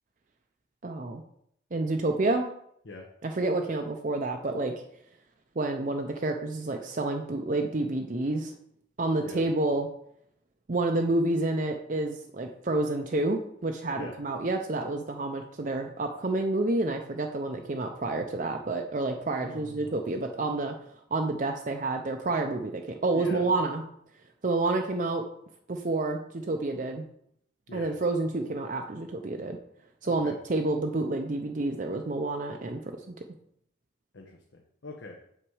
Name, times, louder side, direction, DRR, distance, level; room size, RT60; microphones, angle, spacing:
voice 1, 0.8-1.2 1.7-2.5 3.2-4.7 5.6-8.5 9.0-9.9 10.7-20.8 21.1-23.8 24.4-25.2 25.7-27.1 27.7-29.6 30.0-33.2, right 2 dB, 40° right, 3 dB, 0.5 m, -29 dB
voice 2, 19.4-20.0 23.1-23.4 27.7-27.9 30.1-30.3 34.1-35.2, left 2 dB, 70° left, 1 dB, 1.0 m, -43 dB
7.4 x 6.0 x 4.7 m, 0.72 s
head